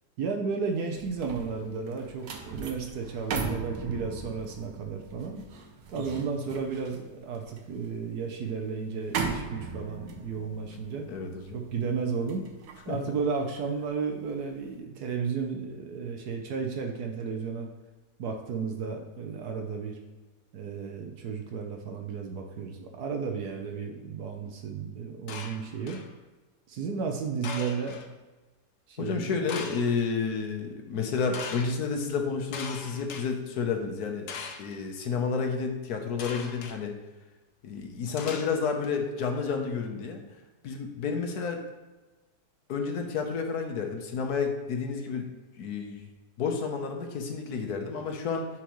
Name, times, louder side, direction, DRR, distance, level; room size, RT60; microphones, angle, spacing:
voice 1, 0.2-5.4 5.9-11.1 11.5-12.4 12.9-17.7 18.2-20.0 20.5-26.0 26.7-28.0 28.9-29.4, right 5 dB, 70° right, 3 dB, 1.3 m, -33 dB
sound 1, 0.7-14.0 14.4-14.7, right 5 dB, 90° right, 1.5 m, -39 dB
voice 2, 11.1-11.6 12.9-13.2 29.0-34.3 34.6-36.9 37.6-40.2 40.6-41.6 42.7-45.3 45.6-46.1 46.4-48.5, left 5 dB, 70° left, 3 dB, 1.4 m, -30 dB
sound 2, 25.3-26.1 27.4-28.1 29.5-30.0 31.3-31.7 32.5-33.2 34.3-34.8 36.2-36.8 38.2-38.9, left 5 dB, 90° left, 1.4 m, -39 dB
10.0 x 4.6 x 3.1 m, 1.2 s
omnidirectional pair, 1.8 m